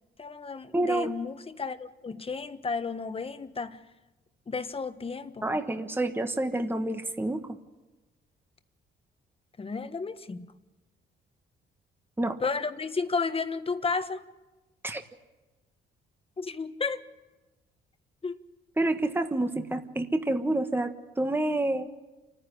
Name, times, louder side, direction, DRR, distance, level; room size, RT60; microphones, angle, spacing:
voice 1, 0.2-3.8 4.5-5.5 9.6-10.5 12.4-14.2 16.4-17.0 18.2-18.4, left 4 dB, 30° left, 10 dB, 1.3 m, -32 dB
voice 2, 0.7-1.1 5.4-7.4 12.2-12.4 14.8-15.0 18.8-21.9, right 1 dB, 10° right, 7 dB, 1.3 m, -28 dB
29.0 x 10.0 x 9.9 m, 1.1 s
cardioid pair, 90°, 20 cm